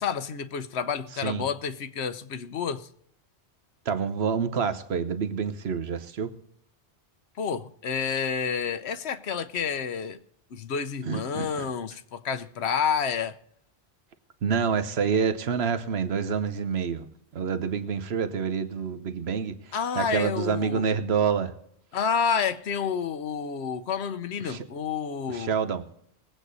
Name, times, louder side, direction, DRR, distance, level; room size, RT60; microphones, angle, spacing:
voice 1, 0.0-2.9 7.4-10.2 10.5-13.4 19.7-20.9 21.9-25.5, left 6 dB, 75° left, 1.0 m, -29 dB
voice 2, 1.2-1.5 3.9-6.3 11.0-11.7 14.4-17.1 17.3-21.5 24.4-24.6 25.3-25.8, right 6 dB, 70° right, 1.2 m, -27 dB
21.0 x 8.4 x 4.0 m
omnidirectional pair, 1.1 m